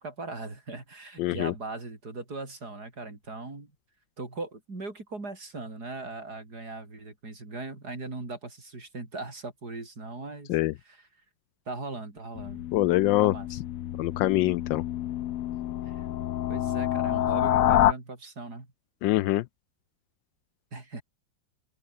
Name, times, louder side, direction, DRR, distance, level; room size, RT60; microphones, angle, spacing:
voice 1, 0.0-3.7 4.2-10.6 10.9-11.1 11.7-12.7 13.2-13.6 15.9-16.1 16.5-18.7 20.7-21.0, right 3 dB, 60° right, 5.6 m, -39 dB
voice 2, 1.2-1.5 10.5-10.7 12.7-13.3 14.0-14.8 19.0-19.4, left 16 dB, 85° left, 1.3 m, -24 dB
sound 1, 12.4-17.9, left 12 dB, 65° left, 0.8 m, -28 dB
open air
omnidirectional pair, 2.0 m